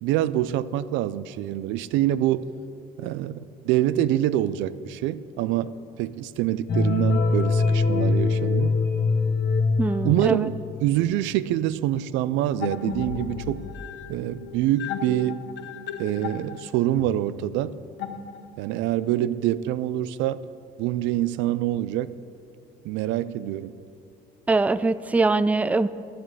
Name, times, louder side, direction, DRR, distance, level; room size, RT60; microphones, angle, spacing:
voice 1, 0.0-2.5 3.0-5.7 6.0-8.8 10.0-10.5 10.8-13.6 14.1-15.4 16.0-17.7 18.6-20.4 20.8-22.1 22.8-23.7, right 13 dB, 85° right, 16 dB, 0.4 m, -25 dB
sound 1, 6.7-10.8, left 4 dB, 60° left, 1.3 m, -23 dB
voice 2, 9.8-10.5 24.5-25.9, right 3 dB, 10° right, 15 dB, 0.4 m, -22 dB
sound 2, 12.6-18.8, left 7 dB, 80° left, 0.9 m, -35 dB
9.8 x 7.7 x 8.2 m, 2.4 s
cardioid pair, 85°, 19 cm